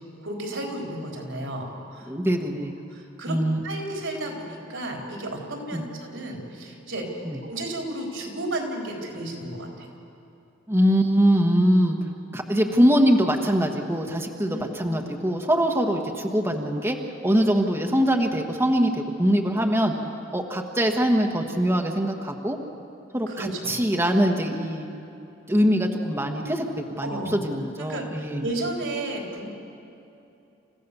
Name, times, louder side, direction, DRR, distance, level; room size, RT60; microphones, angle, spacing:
voice 1, 0.2-2.1 2.9-3.4 3.6-7.0 7.4-9.9 14.5-15.0 23.3-23.7 27.0-27.4 27.8-29.5, right 1 dB, 80° right, 0 dB, 4.0 m, -33 dB
voice 2, 2.1-2.7 3.3-3.6 5.7-5.8 7.2-7.4 10.7-12.0 12.3-17.0 17.2-19.9 20.3-22.6 23.1-24.9 25.5-26.6 27.0-28.5, equal, 15° right, 2 dB, 1.3 m, -23 dB
28.5 x 15.0 x 6.9 m, 2.8 s
head